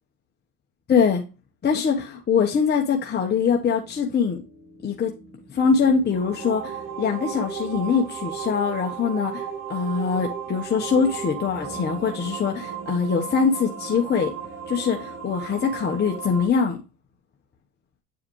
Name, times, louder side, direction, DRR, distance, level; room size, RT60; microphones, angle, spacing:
voice 1, 0.9-1.2 1.6-4.4 4.8-5.1 5.5-9.4 9.7-14.3 14.7-16.8, left 6 dB, 25° left, 1.1 m, -23 dB
sound 1, 3.0-16.5, right 7 dB, 40° right, 2.3 m, -35 dB
8.7 x 4.8 x 3.1 m
supercardioid pair, 115°, 38 cm